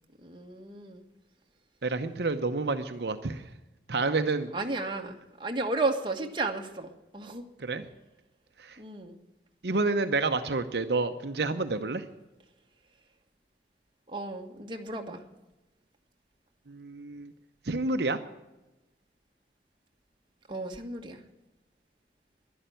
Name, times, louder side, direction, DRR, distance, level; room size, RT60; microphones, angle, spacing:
voice 1, 0.2-1.0 4.5-7.4 8.8-9.2 14.1-15.2 20.5-21.2, right 2 dB, 25° right, 3 dB, 1.5 m, -33 dB
voice 2, 1.8-3.5 3.9-4.5 7.6-7.8 8.6-8.8 9.6-12.0 16.7-17.3 17.7-18.2, right 3 dB, 70° right, 8 dB, 0.8 m, -29 dB
11.5 x 11.5 x 9.1 m, 1.0 s
head